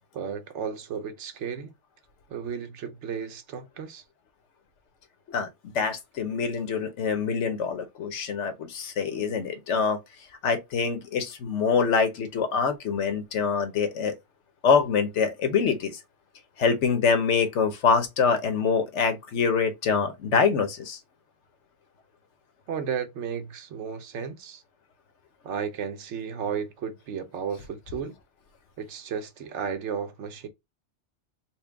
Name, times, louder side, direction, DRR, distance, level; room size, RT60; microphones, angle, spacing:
voice 1, 0.1-1.7 2.3-4.0 22.7-24.6 25.4-28.1 28.8-30.5, right 7 dB, 90° right, 1.0 m, -33 dB
voice 2, 5.7-10.0 10.4-14.1 14.6-16.0 16.6-21.0, left 5 dB, 90° left, 1.2 m, -25 dB
4.3 x 2.1 x 3.3 m
omnidirectional pair, 1.2 m